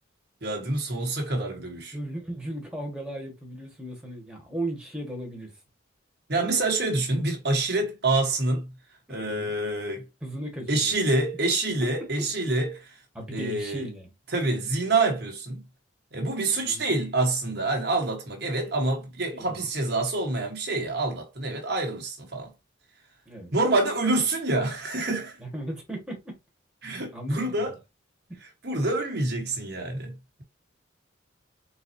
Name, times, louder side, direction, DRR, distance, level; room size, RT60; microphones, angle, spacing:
voice 1, 0.4-1.9 6.3-8.7 9.1-10.1 10.7-13.0 13.3-13.9 14.3-15.6 16.1-22.5 23.5-25.4 26.8-27.7 28.6-30.4, right 2 dB, 55° right, 1.2 m, -27 dB
voice 2, 1.9-5.5 9.1-9.5 10.2-11.2 11.7-11.8 13.1-14.1 16.6-17.0 19.3-19.7 23.3-23.5 25.4-26.3 27.1-27.8, right 1 dB, 5° right, 1.5 m, -36 dB
4.1 x 3.9 x 2.7 m
head